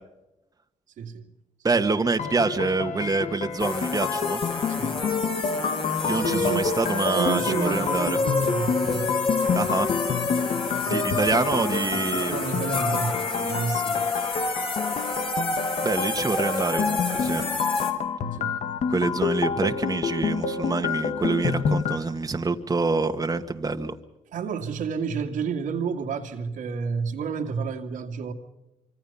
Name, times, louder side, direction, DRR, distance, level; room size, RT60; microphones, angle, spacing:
voice 1, 1.0-1.3 4.7-5.0 6.0-6.7 7.1-9.1 10.8-11.2 12.3-14.1 18.4-18.6 24.3-28.3, right 6 dB, 80° right, 2.4 m, -30 dB
voice 2, 1.6-4.4 6.1-8.2 9.5-9.9 10.9-12.4 15.8-17.4 18.9-23.9, right 3 dB, 25° right, 1.6 m, -26 dB
sound 1, 2.2-22.0, left 6 dB, 60° left, 1.8 m, -28 dB
sound 2, 3.6-17.9, left 3 dB, 40° left, 4.8 m, -28 dB
25.5 x 25.0 x 5.7 m
cardioid pair, 80°, 13 cm